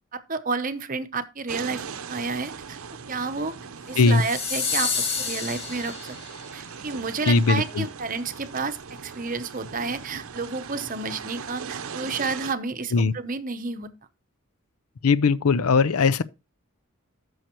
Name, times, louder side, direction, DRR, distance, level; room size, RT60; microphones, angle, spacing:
voice 1, 0.1-1.8 2.1-2.8 3.1-3.6 3.9-6.2 6.5-13.9, right 4 dB, 35° right, 0.8 m, -30 dB
sound 1, 1.5-12.5, right 6 dB, 75° right, 0.7 m, -39 dB
sound 2, 3.9-6.4, left 5 dB, 50° left, 2.4 m, -29 dB
voice 2, 7.3-7.8 12.9-13.1 15.0-16.2, left 4 dB, 80° left, 0.6 m, -19 dB
13.5 x 6.4 x 3.0 m
head